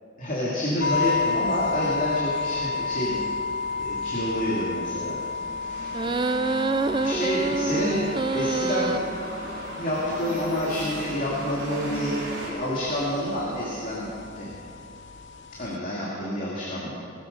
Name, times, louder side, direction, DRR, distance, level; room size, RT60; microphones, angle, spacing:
voice 1, 0.2-3.3 3.8-5.2 5.6-6.1 7.0-8.0 8.3-9.0 9.8-14.1 14.4-14.5 15.5-16.9, equal, 40° left, -6 dB, 2.6 m, -28 dB
sound 1, 0.8-15.8, left 4 dB, 60° left, 0.8 m, -32 dB
sound 2, 1.1-12.5, right 1 dB, 55° right, 4.2 m, -39 dB
sound 3, 5.9-9.0, right 3 dB, 20° right, 0.3 m, -26 dB
20.0 x 13.0 x 5.4 m, 2.7 s
head